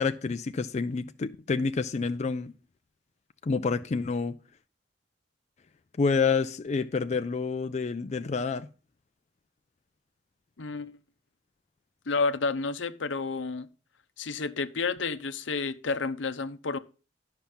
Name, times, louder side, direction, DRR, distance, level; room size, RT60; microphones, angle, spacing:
voice 1, 0.0-2.5 3.4-4.4 6.0-8.7, left 4 dB, 40° left, 0.4 m, -28 dB
voice 2, 10.6-10.9 12.1-13.7 14.2-16.8, left 4 dB, 75° left, 0.8 m, -30 dB
11.5 x 5.8 x 5.4 m
head